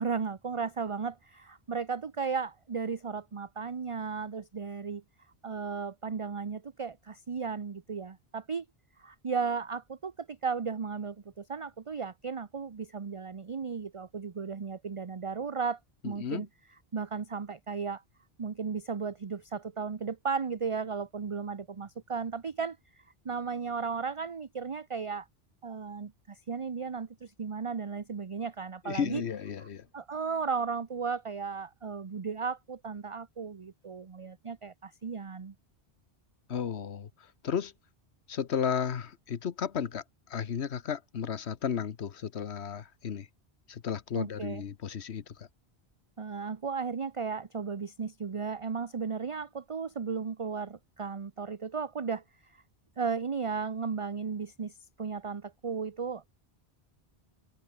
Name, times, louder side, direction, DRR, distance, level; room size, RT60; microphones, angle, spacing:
voice 1, 0.0-5.0 5.4-8.7 9.0-16.5 16.9-18.0 18.4-25.3 25.6-29.2 29.6-29.7 29.9-35.5 44.1-44.6 46.2-52.6 53.0-56.3, right 5 dB, 35° right, 0.7 m, -35 dB
voice 2, 16.0-16.5 28.8-29.9 36.5-37.7 38.3-40.0 40.3-43.3 43.7-45.5, left 7 dB, 85° left, 1.3 m, -34 dB
omnidirectional pair, 1.1 m